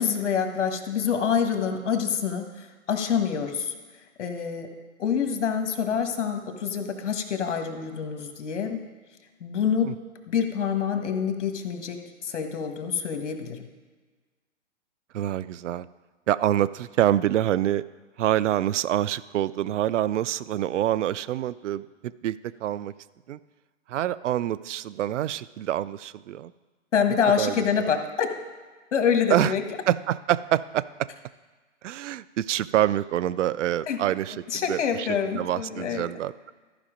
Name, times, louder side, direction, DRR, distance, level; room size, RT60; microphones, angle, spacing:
voice 1, 0.0-3.7 4.2-4.7 5.0-8.8 9.4-9.9 10.3-12.0 12.2-13.7 26.9-28.3 28.9-29.6 33.9-34.0 34.5-36.0, left 7 dB, 70° left, 6 dB, 1.5 m, -26 dB
voice 2, 15.1-15.9 16.3-17.8 18.2-22.9 23.3-23.4 23.9-26.5 27.4-27.6 29.3-29.5 29.9-30.8 31.8-36.5, right 12 dB, 75° right, 17 dB, 0.5 m, -26 dB
13.5 x 5.1 x 5.0 m, 1.4 s
hypercardioid pair, 140°, 37 cm